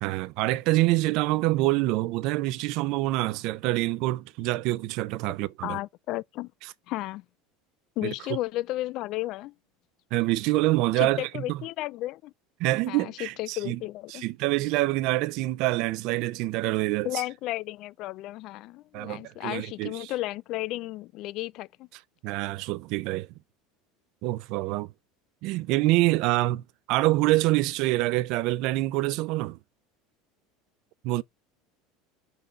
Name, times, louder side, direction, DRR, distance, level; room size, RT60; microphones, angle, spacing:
voice 1, 0.0-5.8 8.0-8.1 10.1-11.6 12.6-13.8 14.1-17.1 18.9-20.1 22.2-23.3 24.2-24.9 25.4-26.6 26.9-29.6 31.0-31.2, right 18 dB, 65° right, 0.5 m, -26 dB
voice 2, 5.6-6.5 6.9-7.2 8.0-9.5 11.0-12.3 12.9-14.2 17.0-21.9, left 17 dB, 55° left, 0.3 m, -33 dB
5.1 x 4.1 x 5.6 m
supercardioid pair, 115°, 0 cm